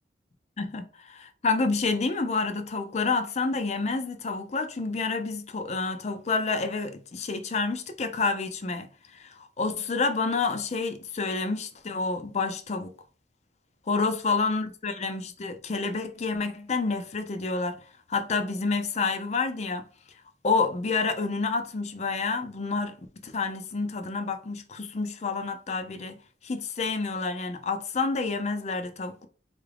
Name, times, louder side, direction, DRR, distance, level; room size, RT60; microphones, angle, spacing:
voice 1, 1.1-12.9 13.9-17.8 18.1-19.8 20.4-23.0 23.2-26.1 26.4-29.3, left 4 dB, 40° left, 0.5 m, -29 dB
3.9 x 2.4 x 3.3 m
head